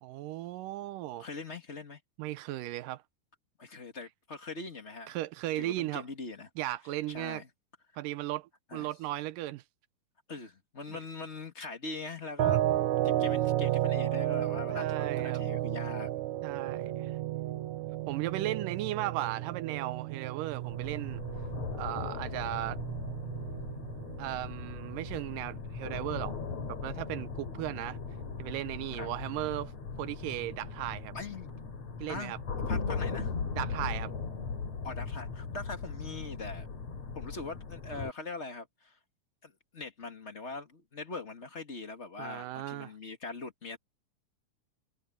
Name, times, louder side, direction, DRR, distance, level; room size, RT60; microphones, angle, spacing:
voice 1, 0.0-1.3 2.2-3.0 5.1-6.0 6.6-7.4 8.0-9.6 10.9-11.0 14.7-15.4 16.4-17.2 18.1-21.2 21.8-22.8 24.2-26.4 26.7-28.0 28.4-29.7 30.0-31.2 32.0-32.4 33.5-34.1 42.2-42.9, right 15 dB, 85° right, 2.4 m, -36 dB
voice 2, 1.2-2.0 3.6-5.2 5.5-6.5 7.1-7.5 8.7-8.9 10.3-12.6 13.0-16.1 29.0-29.1 31.1-31.5 32.1-32.3 32.7-33.3 34.8-36.7 37.1-39.0 39.4-43.8, left 3 dB, 25° left, 1.7 m, -41 dB
sound 1, 12.4-25.4, right 13 dB, 70° right, 2.3 m, -33 dB
sound 2, 20.5-38.1, left 5 dB, 55° left, 4.1 m, -38 dB
omnidirectional pair, 3.7 m